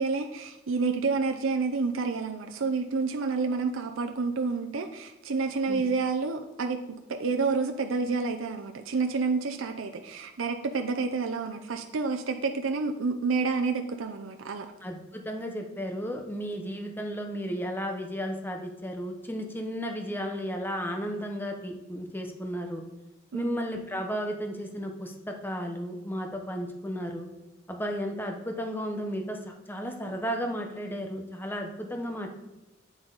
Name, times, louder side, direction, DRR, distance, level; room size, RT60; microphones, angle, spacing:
voice 1, 0.0-6.8 7.1-14.7 23.3-23.6, right 4 dB, 80° right, 5 dB, 0.6 m, -29 dB
voice 2, 14.8-22.8 23.3-27.3 27.7-32.3, equal, 10° left, 3 dB, 0.9 m, -34 dB
8.7 x 7.9 x 4.0 m, 0.97 s
head